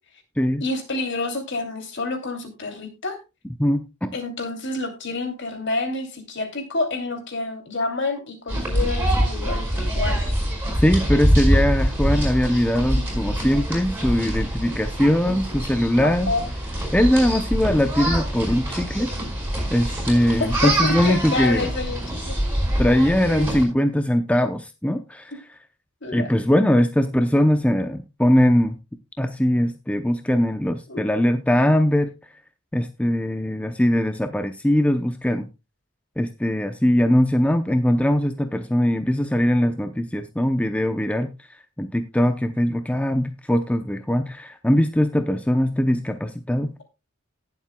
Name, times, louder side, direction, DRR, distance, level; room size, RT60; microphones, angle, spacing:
voice 1, 0.6-3.2 4.1-9.7 9.9-10.2 16.0-16.4 20.4-22.3 23.2-23.6 26.0-26.3 30.9-31.0, left 3 dB, 60° left, 5 dB, 2.9 m, -28 dB
voice 2, 3.6-4.1 10.8-16.3 16.9-19.1 19.7-21.7 22.8-25.3 26.1-28.8 29.2-32.1 32.7-35.5 36.2-41.3 41.8-46.7, equal, 5° left, 7 dB, 0.6 m, -21 dB
sound 1, 8.5-23.6, right 1 dB, 10° right, 4.9 m, -24 dB
18.5 x 7.4 x 2.3 m, 0.26 s
head